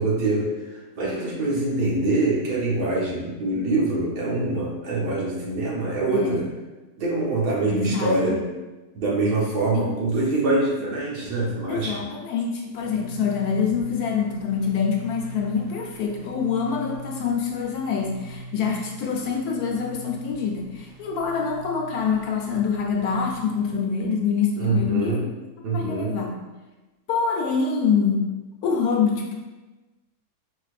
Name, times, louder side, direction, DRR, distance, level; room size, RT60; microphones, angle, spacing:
voice 1, 0.0-6.5 7.0-8.4 8.9-12.0 24.6-25.2 25.6-26.1, right 2 dB, 75° right, -4 dB, 1.7 m, -24 dB
voice 2, 7.7-8.4 9.7-9.9 11.7-25.3 25.7-26.4 27.1-28.2 28.6-29.4, left 6 dB, 70° left, -1 dB, 1.2 m, -25 dB
sound 1, 12.8-23.7, right 1 dB, 60° right, 1.4 m, -41 dB
5.3 x 4.0 x 2.4 m, 1.1 s
omnidirectional pair, 1.7 m